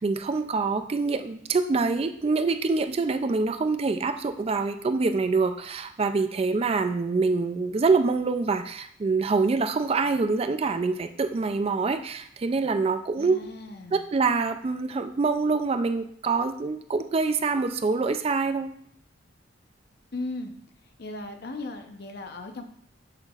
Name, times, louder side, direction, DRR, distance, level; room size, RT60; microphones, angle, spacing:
voice 1, 0.0-13.5 13.9-18.7, right 4 dB, 30° right, 8 dB, 0.3 m, -25 dB
voice 2, 13.2-14.0 20.1-20.5 21.0-22.6, left 2 dB, 55° left, 5 dB, 0.8 m, -37 dB
8.0 x 6.4 x 2.4 m, 0.65 s
head